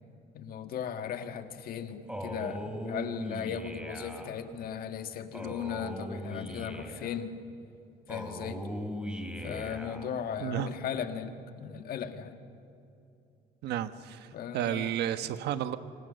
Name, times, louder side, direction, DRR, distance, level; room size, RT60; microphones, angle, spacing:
voice 1, 0.3-7.4 8.1-8.7 9.4-12.4 14.3-15.0 15.2-15.3, left 8 dB, 60° left, 7 dB, 1.9 m, -37 dB
Male speech man speaking, 2.1-4.3 5.3-7.2 8.1-10.1, equal, 5° right, 3.1 m, -39 dB
voice 2, 13.6-14.3 14.5-15.8, right 11 dB, 75° right, 11 dB, 1.3 m, -32 dB
28.0 x 25.5 x 6.7 m, 2.6 s
cardioid pair, 110°, 17 cm